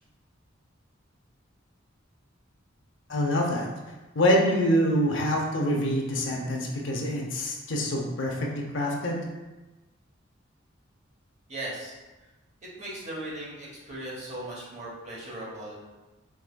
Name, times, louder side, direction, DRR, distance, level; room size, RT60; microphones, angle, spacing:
voice 1, 3.1-3.7 4.1-9.2, equal, 65° left, 0 dB, 0.7 m, -25 dB
voice 2, 11.5-11.9 12.8-15.8, right 1 dB, 35° right, -5 dB, 1.0 m, -38 dB
4.7 x 3.5 x 2.2 m, 1.1 s
head